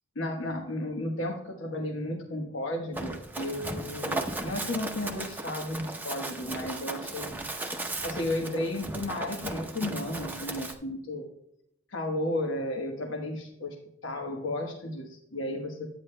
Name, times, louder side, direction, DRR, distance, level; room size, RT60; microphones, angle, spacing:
voice 1, 0.1-7.4 8.0-11.2 11.9-13.8 14.0-15.9, left 1 dB, 70° left, 2 dB, 1.2 m, -33 dB
Run, 2.9-10.7, right 2 dB, 10° right, 0.8 m, -36 dB
11.5 x 9.0 x 2.2 m, 0.77 s
head